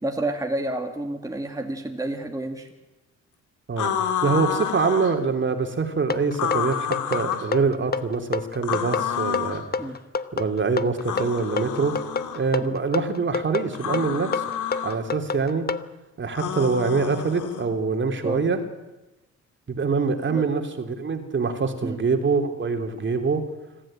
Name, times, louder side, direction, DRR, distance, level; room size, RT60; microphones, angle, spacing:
voice 1, 0.0-2.7 9.8-10.0 12.6-12.7 18.2-18.4 20.3-20.5 21.8-22.0, right 1 dB, 10° right, 3 dB, 2.3 m, -29 dB
sound 1, 3.8-5.2 6.3-7.5 8.6-9.6 11.0-12.4 13.7-15.0 16.3-17.7, left 8 dB, 80° left, 2.5 m, -29 dB
voice 2, 4.2-9.6 10.3-11.9 12.3-14.4 14.8-15.7 16.2-18.6 19.7-23.4, right 4 dB, 40° right, 6 dB, 3.2 m, -24 dB
sound 2, 6.1-15.9, left 5 dB, 30° left, 1.1 m, -28 dB
25.5 x 14.5 x 8.9 m, 1.1 s
cardioid pair, 90°, 30 cm